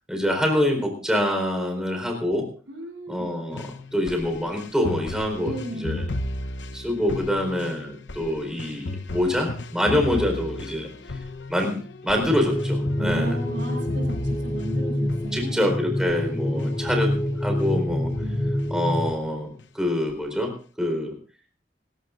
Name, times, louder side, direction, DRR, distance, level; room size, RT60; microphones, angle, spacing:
voice 1, 0.1-2.5 3.1-6.0 6.7-10.9 11.5-13.3 15.3-17.1 17.4-18.1 18.7-21.2, left 1 dB, 5° right, 3 dB, 4.3 m, -25 dB
voice 2, 2.6-3.3 5.4-6.0 13.0-15.6 16.5-17.0 18.2-18.5, right 1 dB, 75° right, -5 dB, 6.7 m, -35 dB
sound 1, 3.5-15.7 16.1-16.3 16.6-18.7 19.1-19.7 20.1-20.2, left 2 dB, 85° left, 0.9 m, -36 dB
sound 2, 12.3-19.1, left 1 dB, 10° left, 0.8 m, -26 dB
25.5 x 14.5 x 2.6 m, 0.40 s
head